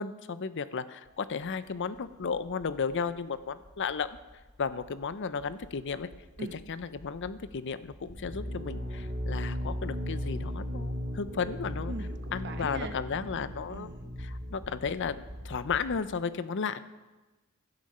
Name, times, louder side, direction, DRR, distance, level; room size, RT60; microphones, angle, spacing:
voice 1, 0.0-4.2 4.6-6.1 6.5-11.9 12.3-13.9 14.2-16.8, left 5 dB, 55° left, 14 dB, 0.6 m, -34 dB
sound 1, 1.0-16.0, equal, 20° right, 2.3 m, -51 dB
sound 2, 8.1-15.7, equal, 35° right, 2.8 m, -37 dB
voice 2, 11.9-13.0 13.7-14.0, right 2 dB, 50° right, 7 dB, 0.9 m, -41 dB
12.0 x 9.6 x 5.5 m, 1.1 s
head